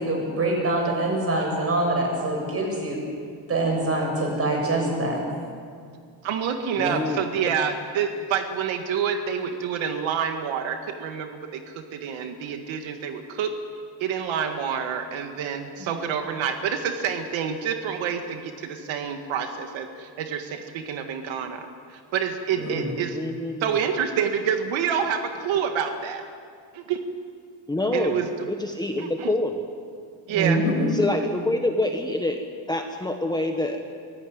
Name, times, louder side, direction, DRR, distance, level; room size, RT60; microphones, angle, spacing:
voice 1, 0.0-3.1 3.5-5.2 6.8-7.0 15.8-15.9 22.5-22.9 23.8-24.0 30.3-30.9, right 2 dB, 30° right, 0 dB, 7.0 m, -25 dB
voice 2, 4.8-5.4 6.8-7.6 23.1-23.8 27.7-29.6 30.9-32.4 32.7-33.8, left 2 dB, 10° left, 3 dB, 1.3 m, -27 dB
voice 3, 6.2-13.5 14.0-21.7 21.9-23.2 23.6-26.2 26.7-27.0 27.9-28.3 29.0-29.3 30.3-30.6, right 7 dB, 85° right, 6 dB, 2.0 m, -28 dB
24.5 x 17.0 x 9.5 m, 2.2 s
cardioid pair, 155°, 45 cm